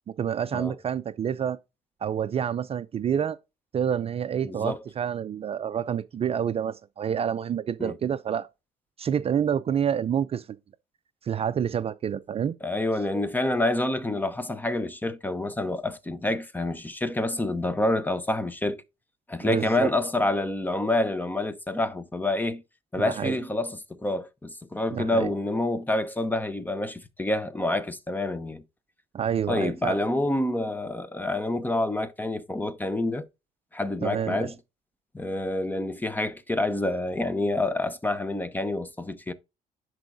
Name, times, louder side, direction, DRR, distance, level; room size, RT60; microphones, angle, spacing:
voice 1, 0.2-1.6 2.0-3.4 3.7-8.5 9.0-10.5 11.2-12.6 19.4-19.9 23.0-23.4 24.9-25.3 29.1-30.1 34.0-34.5, right 8 dB, 35° right, 0.4 m, -28 dB
voice 2, 4.4-4.8 7.8-7.9 12.6-18.8 19.3-22.6 22.9-28.6 29.5-33.3 33.7-34.5 35.1-39.3, left 2 dB, 10° left, 0.7 m, -27 dB
10.5 x 4.5 x 2.6 m
cardioid pair, 110°, 17 cm